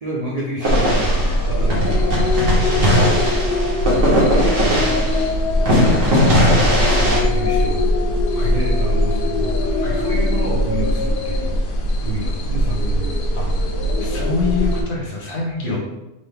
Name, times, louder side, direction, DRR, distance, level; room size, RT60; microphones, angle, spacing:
voice 1, 0.0-2.3 2.7-5.1 5.6-11.6 12.0-13.7 15.6-15.8, right 1 dB, 85° right, -4 dB, 0.3 m, -30 dB
sound 1, 0.6-5.3 5.7-7.2, equal, 65° right, 1.4 m, -18 dB
sound 2, 0.7-14.8, left 1 dB, 70° left, 0.5 m, -20 dB
voice 2, 2.7-3.1 8.3-8.6 9.8-10.1 13.3-13.7 14.0-15.8, left 4 dB, 50° left, -2 dB, 1.1 m, -26 dB
4.0 x 2.8 x 3.3 m, 0.96 s
omnidirectional pair, 1.5 m